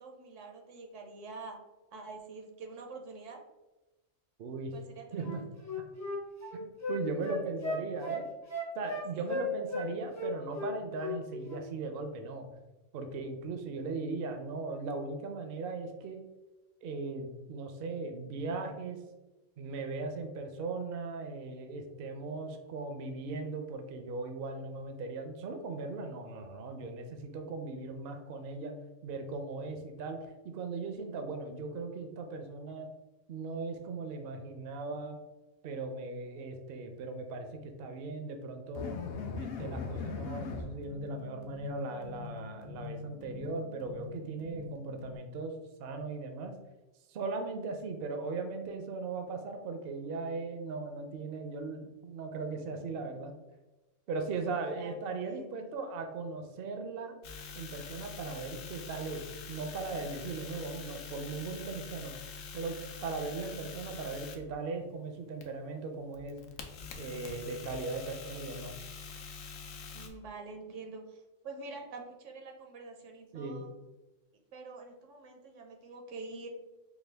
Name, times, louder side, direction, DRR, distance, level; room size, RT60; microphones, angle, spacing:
voice 1, 0.0-1.6 1.9-3.4 4.7-5.4 9.1-9.3 52.5-53.3 54.5-55.6 69.9-73.7 74.5-76.5, right 3 dB, 75° right, 2 dB, 1.0 m, -46 dB
voice 2, 4.4-4.7 5.1-5.4 6.5-8.3 8.7-12.5 12.9-16.2 16.8-19.0 19.6-28.7 29.0-32.9 33.3-35.2 35.6-39.0 39.3-45.5 45.8-46.5 47.1-53.3 54.1-57.2 57.5-62.1 62.5-62.8 63.0-66.4 67.0-68.7 73.3-73.6, right 3 dB, 60° right, 6 dB, 0.6 m, -38 dB
Wind instrument woodwind instrument, 5.2-9.9 10.1-11.2 11.5-11.7, left 2 dB, 20° left, 0.5 m, -36 dB
sound 1, 38.7-45.2, left 5 dB, 65° left, 0.7 m, -41 dB
sound 2, 57.2-64.4 65.4-70.1, left 5 dB, 85° left, 1.0 m, -45 dB
4.9 x 2.3 x 3.3 m, 1.1 s
omnidirectional pair, 1.3 m